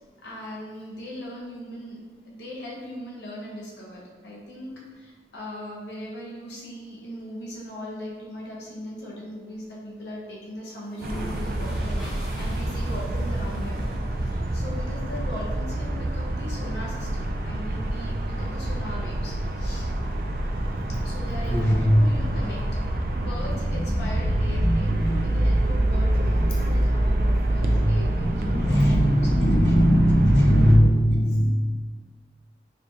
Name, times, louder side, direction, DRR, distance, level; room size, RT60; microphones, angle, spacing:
voice 1, 0.2-13.8 14.2-19.9 20.9-22.8 23.1-29.9 30.2-30.6 31.1-31.2, left 1 dB, 80° left, -3 dB, 0.7 m, -39 dB
sound 1, 8.8-9.3 10.7-14.4, equal, 5° right, 1.0 m, -46 dB
sound 2, 11.0-30.8, right 1 dB, 50° right, 0.3 m, -25 dB
voice 2, 21.5-21.9 24.6-25.5 26.3-26.4 27.6-27.8 28.1-31.5, equal, 35° left, -5 dB, 0.6 m, -21 dB
4.7 x 2.8 x 2.3 m, 1.5 s
head